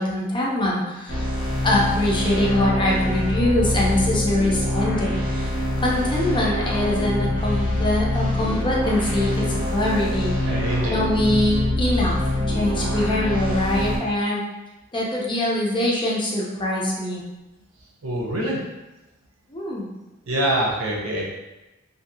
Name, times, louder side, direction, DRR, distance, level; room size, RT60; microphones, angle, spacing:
voice 1, 0.0-1.3 1.6-5.5 5.8-10.3 10.8-12.2 12.5-14.4 14.9-17.2 19.5-19.9, left 1 dB, 25° left, -4 dB, 0.6 m, -23 dB
sound 1, 1.1-14.0, left 1 dB, 80° left, 1.1 m, -25 dB
voice 2, 10.5-11.0 18.0-18.7 20.3-21.3, right 1 dB, 80° right, -3 dB, 0.8 m, -24 dB
2.8 x 2.7 x 2.7 m, 1.0 s
head